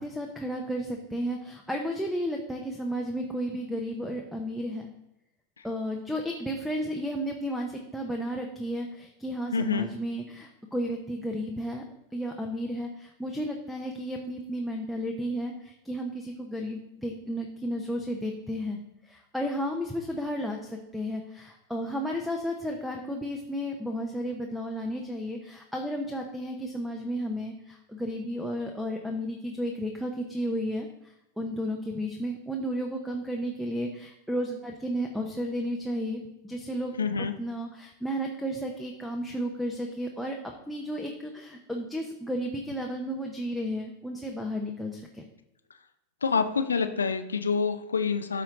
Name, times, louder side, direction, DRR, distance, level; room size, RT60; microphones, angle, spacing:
voice 1, 0.0-4.9 5.6-11.8 12.1-18.8 19.0-36.9 37.4-40.4 40.7-45.2, equal, ahead, 0 dB, 0.9 m, -33 dB
voice 2, 9.5-9.9 37.0-37.3 46.2-48.4, left 5 dB, 75° left, 8 dB, 0.6 m, -27 dB
13.0 x 4.4 x 3.8 m, 0.88 s
figure-of-eight pair, 90°, 0 cm